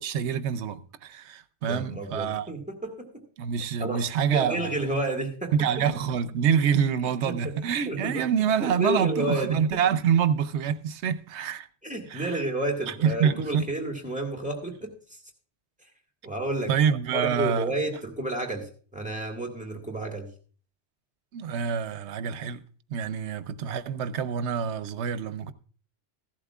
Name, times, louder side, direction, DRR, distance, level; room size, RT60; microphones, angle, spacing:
voice 1, 0.0-2.5 3.4-4.9 5.5-11.7 12.1-12.4 12.9-13.7 16.7-17.7 21.3-22.6 22.9-25.5, right 7 dB, 85° right, 1.0 m, -26 dB
voice 2, 1.7-3.1 3.8-5.9 7.2-7.6 7.9-8.2 8.6-9.8 11.8-14.9 16.2-16.7 17.1-20.3, right 2 dB, 5° right, 1.7 m, -31 dB
14.5 x 11.5 x 2.4 m
omnidirectional pair, 1.1 m